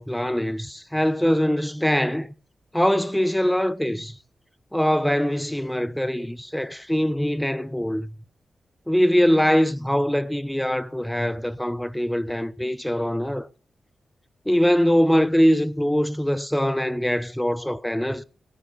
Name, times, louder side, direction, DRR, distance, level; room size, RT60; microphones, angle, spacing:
voice 1, 0.0-2.3 2.7-4.2 4.7-8.2 8.9-13.5 14.5-18.2, equal, 5° left, 0.8 m, -22 dB
19.0 x 10.5 x 2.6 m
cardioid pair, 75°, 0 cm